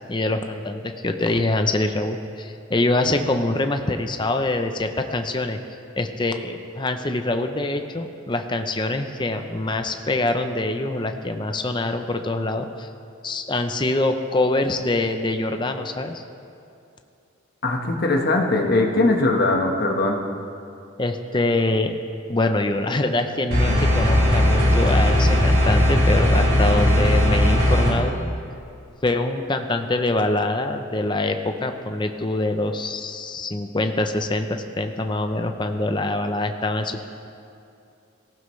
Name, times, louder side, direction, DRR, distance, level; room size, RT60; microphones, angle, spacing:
voice 1, 0.1-5.6 6.0-12.9 13.2-16.2 21.0-21.9 22.3-28.1 29.0-37.1, left 2 dB, 25° left, 6 dB, 0.6 m, -24 dB
voice 2, 17.6-20.2, left 2 dB, 50° left, 2 dB, 1.3 m, -20 dB
sound 1, 23.5-27.9, left 1 dB, 80° right, 4.0 m, -18 dB
17.5 x 15.0 x 3.2 m, 2.6 s
head